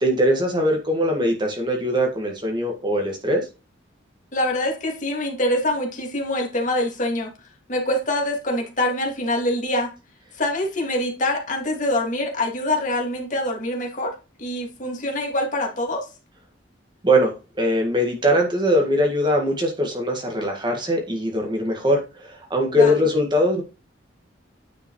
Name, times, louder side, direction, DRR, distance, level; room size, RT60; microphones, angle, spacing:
voice 1, 0.0-3.4 17.0-23.6, equal, 25° right, 2 dB, 1.7 m, -21 dB
voice 2, 4.3-7.3 7.7-9.9 10.4-14.1 14.4-16.1 22.7-23.0, left 1 dB, 40° left, 1 dB, 2.2 m, -25 dB
9.4 x 5.4 x 3.1 m, 0.31 s
head